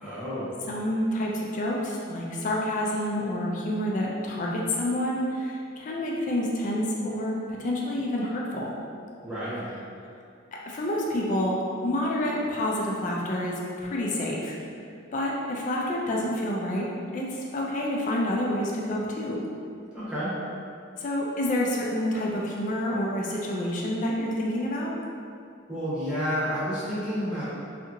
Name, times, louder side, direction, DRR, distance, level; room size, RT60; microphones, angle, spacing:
voice 1, 0.0-0.5 9.2-9.7 19.9-20.3 25.7-27.4, equal, 5° right, -12 dB, 0.8 m, -30 dB
voice 2, 0.7-8.7 10.6-14.5 15.1-16.9 17.1-19.4 21.0-25.0, left 1 dB, 40° left, -3 dB, 0.3 m, -28 dB
2.8 x 2.4 x 2.5 m, 2.4 s
head